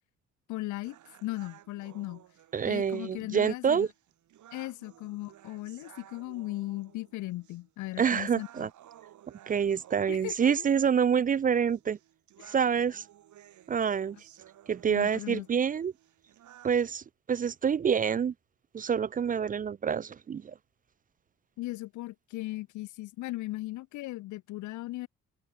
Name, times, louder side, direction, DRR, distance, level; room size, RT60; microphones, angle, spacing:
voice 1, 0.5-1.0 1.2-2.2 2.6-3.9 4.5-8.7 10.1-10.7 12.4-12.5 14.9-15.5 21.6-25.1, left 18 dB, 75° left, 0.5 m, -37 dB
sound 1, 0.8-16.8, right 12 dB, 75° right, 3.7 m, -56 dB
voice 2, 2.5-3.9 8.0-8.7 9.5-12.0 12.5-13.0 13.7-14.2 14.7-15.9 16.6-18.3 18.7-20.5, right 7 dB, 30° right, 0.4 m, -27 dB
open air
cardioid pair, 90°, 30 cm